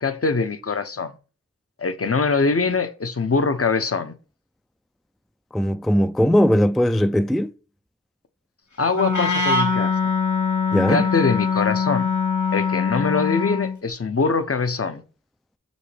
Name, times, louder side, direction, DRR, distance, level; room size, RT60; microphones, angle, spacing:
voice 1, 0.0-1.2 1.8-4.1 8.8-9.9 10.9-12.1 12.5-15.0, left 4 dB, 50° left, 0.7 m, -23 dB
voice 2, 5.5-7.5 10.7-11.1, equal, ahead, 0.3 m, -19 dB
Wind instrument woodwind instrument, 8.9-13.8, left 5 dB, 90° left, 1.2 m, -22 dB
6.8 x 5.2 x 3.3 m
wide cardioid pair, 50°, 29 cm